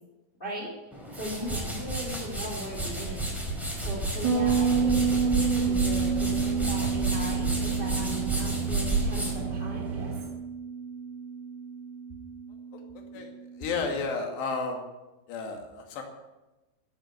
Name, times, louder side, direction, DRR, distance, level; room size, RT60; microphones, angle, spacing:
voice 1, 0.4-10.1, equal, 15° left, -3 dB, 2.2 m, -38 dB
sound 1, 0.9-10.3, right 2 dB, ahead, 3.7 m, -32 dB
Bass guitar, 4.2-13.6, right 5 dB, 25° right, 4.1 m, -30 dB
sound 2, 4.4-10.2, right 7 dB, 80° right, 3.2 m, -36 dB
voice 2, 13.6-14.8 15.3-16.0, left 4 dB, 65° left, 2 dB, 4.3 m, -32 dB
14.0 x 11.0 x 8.3 m, 1.1 s
omnidirectional pair, 5.4 m